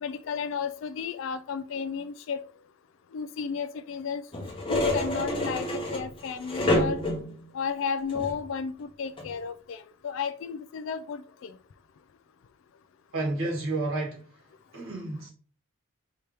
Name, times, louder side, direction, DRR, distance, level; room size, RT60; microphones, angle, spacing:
voice 1, 0.0-2.4 3.1-4.2 4.7-7.0 7.5-11.5, left 6 dB, 65° left, 0.3 m, -33 dB
sound 1, 4.3-7.4 8.1-8.5 9.2-9.3, left 1 dB, 25° left, 1.0 m, -28 dB
voice 2, 13.1-14.2 14.7-15.3, right 2 dB, 75° right, 1.9 m, -30 dB
4.9 x 2.9 x 3.4 m
head